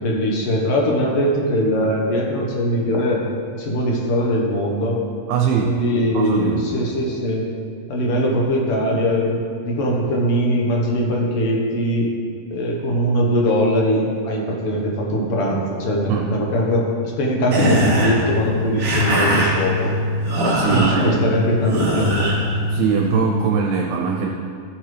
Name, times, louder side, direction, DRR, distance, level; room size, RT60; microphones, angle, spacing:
voice 1, 0.0-3.2 3.6-5.0 5.6-7.4 7.9-12.1 12.5-16.9 17.2-19.9 20.7-22.3, equal, 60° left, -2 dB, 1.6 m, -21 dB
voice 2, 5.3-5.8 6.1-6.7 16.1-16.3 20.5-21.2 22.7-24.3, right 6 dB, 80° right, 1 dB, 2.6 m, -21 dB
sound 1, 17.5-23.3, equal, 40° right, 2.6 m, -21 dB
14.5 x 8.5 x 3.3 m, 2.3 s
omnidirectional pair, 4.4 m